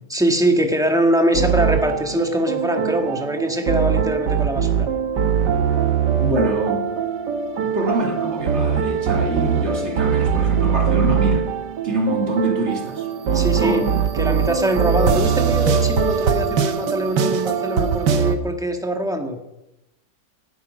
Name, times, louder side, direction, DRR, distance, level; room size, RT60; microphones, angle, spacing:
voice 1, 0.1-4.9 13.3-13.9 14.1-19.4, equal, ahead, 1.4 m, -22 dB
sound 1, 1.3-18.4, right 7 dB, 70° right, 1.7 m, -21 dB
voice 2, 5.9-6.9 7.7-11.5 11.8-13.9, right 1 dB, 40° right, 2.6 m, -25 dB
18.5 x 11.5 x 5.5 m
omnidirectional pair, 1.9 m